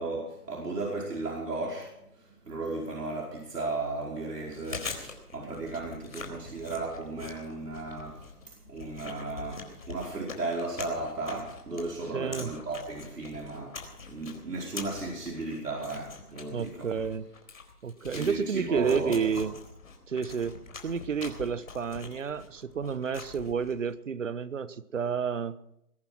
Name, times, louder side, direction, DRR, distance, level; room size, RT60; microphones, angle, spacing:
voice 1, 0.0-13.8 14.1-16.9 18.1-19.2, right 2 dB, 85° right, -2 dB, 5.0 m, -35 dB
Chewing mastication, 4.4-23.9, left 4 dB, 60° left, 4.2 m, -44 dB
voice 2, 12.1-12.5 16.5-17.2 17.8-19.5 20.1-20.5 20.8-25.6, right 6 dB, 55° right, 17 dB, 1.0 m, -30 dB
21.0 x 11.0 x 5.9 m, 0.80 s
hypercardioid pair, 170°, 46 cm